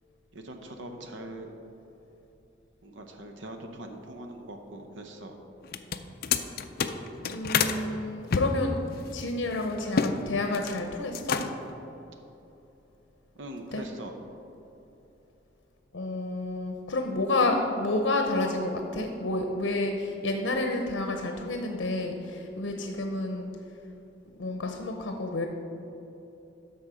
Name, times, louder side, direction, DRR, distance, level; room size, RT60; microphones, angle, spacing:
voice 1, 0.3-1.5 2.8-5.4 13.3-14.1, right 1 dB, 85° right, 4 dB, 0.7 m, -42 dB
sound 1, 5.6-7.8 8.3-10.2 10.4-10.8 11.1-11.7, left 6 dB, 55° left, 0.4 m, -29 dB
voice 2, 7.2-11.4 13.7-13.8 15.9-23.5 24.4-25.5, left 2 dB, 85° left, 3 dB, 0.7 m, -30 dB
12.5 x 4.3 x 5.0 m, 3.0 s
head